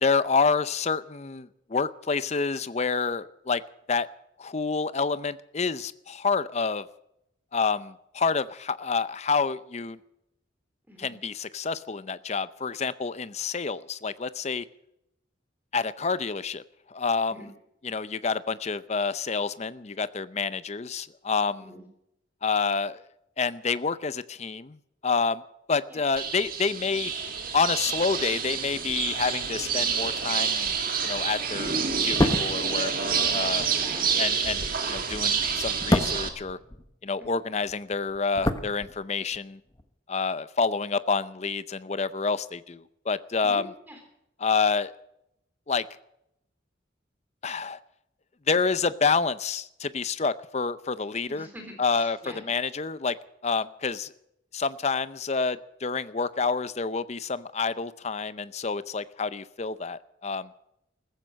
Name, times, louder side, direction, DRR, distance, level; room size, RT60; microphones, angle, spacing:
voice 1, 0.0-3.6 3.9-4.1 4.4-6.9 7.5-10.0 11.0-14.6 15.7-16.6 16.9-17.5 17.8-21.7 22.4-23.0 23.4-24.8 25.0-25.4 25.7-27.1 27.5-30.8 31.0-33.6 34.2-36.6 37.0-39.6 40.1-43.7 44.4-44.9 45.7-45.9 47.4-47.8 48.5-51.5 51.8-53.2 53.4-54.1 54.5-60.5, left 4 dB, 35° left, 15 dB, 0.6 m, -28 dB
sound 1, 26.2-36.3, right 6 dB, 45° right, 1.9 m, -28 dB
sound 2, 32.0-37.3 37.6-39.4 39.7-39.8, left 1 dB, 20° left, 1.0 m, -29 dB
voice 2, 33.7-34.2 43.4-44.0 51.3-52.4, equal, 10° right, 4 dB, 3.5 m, -45 dB
15.0 x 15.0 x 6.5 m, 0.82 s
head